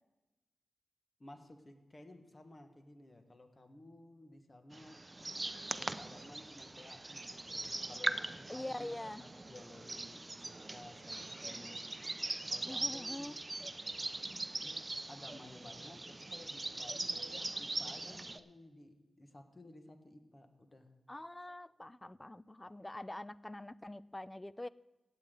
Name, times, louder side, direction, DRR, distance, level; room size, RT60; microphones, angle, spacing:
voice 1, 1.2-5.0 5.7-11.8 12.5-13.3 14.6-17.3 17.6-20.9, left 1 dB, 40° left, 6 dB, 1.6 m, -55 dB
sound 1, 4.7-18.4, right 2 dB, 30° right, 0.6 m, -41 dB
voice 2, 8.5-9.2 12.6-13.4 21.1-24.7, left 1 dB, 20° left, 19 dB, 0.4 m, -44 dB
16.5 x 8.5 x 3.9 m, 1.1 s
cardioid pair, 45°, 0 cm